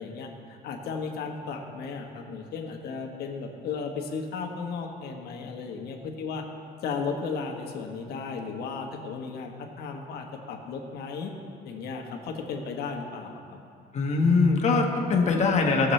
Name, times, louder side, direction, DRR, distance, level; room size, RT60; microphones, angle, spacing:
voice 1, 0.0-6.4 6.8-11.3 11.6-13.6, left 5 dB, 70° left, 2 dB, 1.4 m, -35 dB
voice 2, 13.9-15.9, left 4 dB, 45° left, 1 dB, 1.5 m, -22 dB
18.0 x 7.2 x 3.3 m, 2.3 s
cardioid pair, 110°, 17 cm